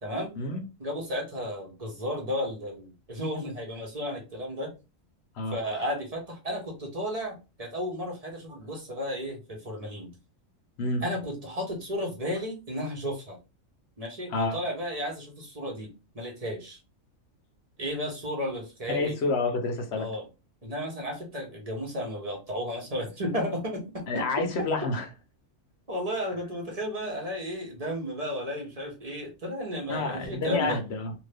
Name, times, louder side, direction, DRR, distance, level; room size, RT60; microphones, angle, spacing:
voice 1, 0.0-0.3 0.8-4.7 5.5-10.1 11.0-13.4 14.0-16.8 17.8-19.1 19.9-20.2 20.6-24.9 25.9-30.8, equal, 30° right, 1.0 m, -33 dB
voice 2, 5.4-5.8 10.8-11.0 14.3-14.6 18.9-20.1 24.1-25.1 29.9-31.1, left 3 dB, 55° left, 0.9 m, -29 dB
2.8 x 2.6 x 3.3 m
omnidirectional pair, 1.4 m